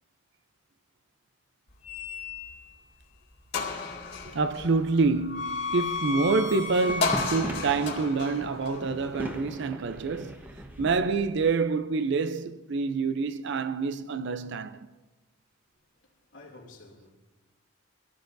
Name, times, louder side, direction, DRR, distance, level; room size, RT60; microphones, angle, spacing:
sound 1, 1.8-2.7 3.1-3.2 3.5-9.6, left 4 dB, 60° left, 2.3 m, -33 dB
voice 1, 4.2-10.5 10.8-14.9, right 4 dB, 65° right, 0.5 m, -27 dB
sound 2, 6.6-11.6, equal, 10° right, 1.1 m, -39 dB
voice 2, 16.0-17.1, left 2 dB, 80° left, 2.6 m, -51 dB
23.5 x 15.0 x 2.6 m
head